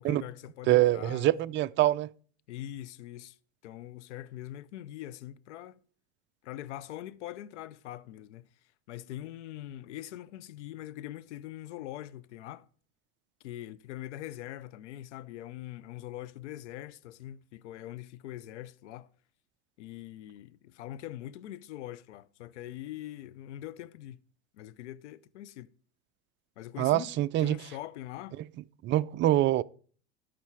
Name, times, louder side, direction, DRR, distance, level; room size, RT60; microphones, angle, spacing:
voice 1, 0.0-1.3 2.5-3.4 3.6-5.8 6.4-8.4 8.9-12.7 13.4-19.1 19.8-24.2 24.5-25.7 26.6-28.4, left 13 dB, 85° left, 0.6 m, -43 dB
voice 2, 0.7-2.1 26.8-27.6 28.8-29.6, right 14 dB, 35° right, 0.4 m, -25 dB
12.5 x 5.2 x 4.6 m
hypercardioid pair, 100°, 35 cm